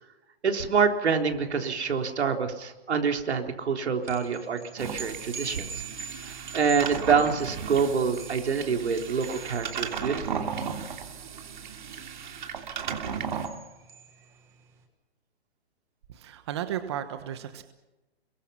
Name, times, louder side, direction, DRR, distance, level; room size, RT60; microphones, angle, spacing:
voice 1, 0.4-5.7 6.2-10.5, right 5 dB, 85° right, 4 dB, 4.0 m, -26 dB
sound 1, 4.0-14.7, right 5 dB, 10° right, 1.5 m, -45 dB
sound 2, 4.8-13.5, right 7 dB, 45° right, 3.0 m, -35 dB
voice 2, 16.1-17.6, right 10 dB, 25° right, 9 dB, 1.2 m, -34 dB
28.0 x 23.0 x 5.8 m, 1.0 s
hypercardioid pair, 175°, 32 cm